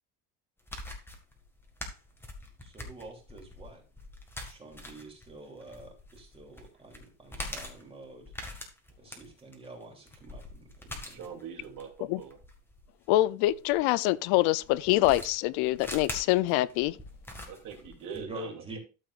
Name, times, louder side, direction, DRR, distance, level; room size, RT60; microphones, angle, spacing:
sound 1, 0.6-13.8 14.6-18.2, left 1 dB, 5° left, 1.8 m, -44 dB
voice 1, 2.6-3.8 4.4-8.3 9.0-11.3 18.1-18.8, right 1 dB, 15° right, 2.9 m, -47 dB
voice 2, 11.1-12.4 17.5-18.8, right 7 dB, 55° right, 2.8 m, -43 dB
voice 3, 13.1-17.0, left 16 dB, 80° left, 0.6 m, -25 dB
13.0 x 7.4 x 2.5 m
cardioid pair, 145°, 37 cm